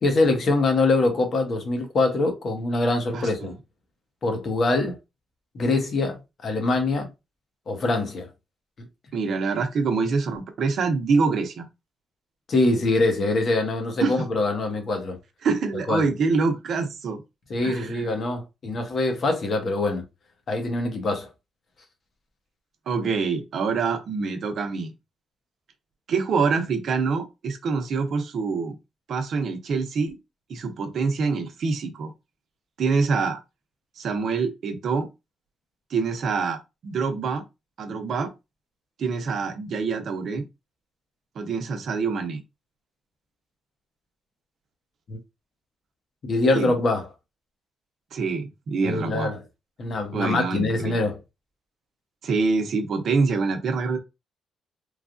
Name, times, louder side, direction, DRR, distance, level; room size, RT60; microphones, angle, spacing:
voice 1, 0.0-3.5 4.2-5.0 5.5-7.1 7.7-8.3 12.5-15.2 15.9-16.1 17.5-20.0 20.5-21.3 45.1-45.2 46.2-47.1 48.8-49.4 49.8-51.2, left 2 dB, 50° left, 0.9 m, -24 dB
voice 2, 3.1-3.5 9.1-11.7 14.0-14.2 15.4-17.2 17.6-18.1 22.9-24.9 26.1-28.7 29.1-30.2 30.5-32.1 32.8-33.4 34.0-35.1 35.9-37.4 37.8-38.3 39.0-40.4 41.4-42.4 46.5-46.8 48.1-49.3 50.1-51.0 52.2-54.0, right 4 dB, 60° right, 0.7 m, -25 dB
3.2 x 2.3 x 2.5 m
cardioid pair, 90°, 0 cm